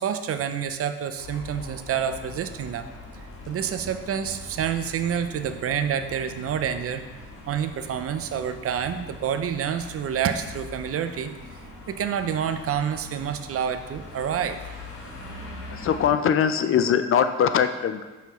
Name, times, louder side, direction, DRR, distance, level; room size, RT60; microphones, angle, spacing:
voice 1, 0.0-2.9 3.5-7.0 7.5-11.4 11.9-14.6, right 8 dB, 50° right, 9 dB, 0.5 m, -28 dB
sound 1, 1.2-16.1, left 2 dB, 75° left, 1.9 m, -42 dB
voice 2, 15.7-18.0, left 8 dB, 45° left, 10 dB, 0.4 m, -22 dB
5.6 x 5.5 x 3.1 m, 1.2 s
cardioid pair, 90°, 30 cm